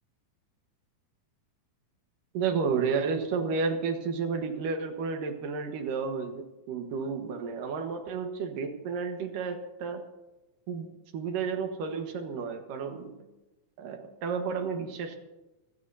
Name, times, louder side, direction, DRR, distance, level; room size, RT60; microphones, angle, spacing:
voice 1, 2.3-10.0 10.7-13.1 13.8-15.2, right 5 dB, 90° right, 5 dB, 3.1 m, -32 dB
28.0 x 15.0 x 2.8 m, 1.0 s
omnidirectional pair, 3.7 m